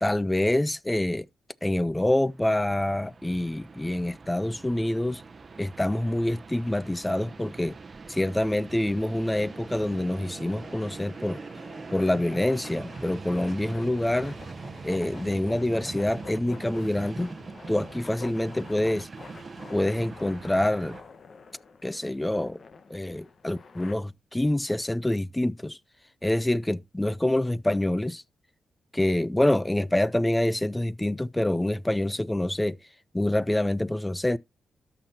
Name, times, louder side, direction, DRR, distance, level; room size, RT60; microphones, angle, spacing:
voice 1, 0.0-1.3 1.6-5.2 5.6-7.8 8.1-11.4 11.9-14.4 14.8-17.3 17.7-19.1 19.7-21.0 21.8-22.6 22.9-25.8 26.2-28.2 28.9-32.8 33.1-34.4, left 1 dB, 10° left, 0.4 m, -26 dB
Train, 2.0-21.0, right 4 dB, 40° right, 0.8 m, -42 dB
sound 1, 9.2-23.9, left 4 dB, 50° left, 1.0 m, -48 dB
13.0 x 6.0 x 2.8 m
cardioid pair, 80°, 0 cm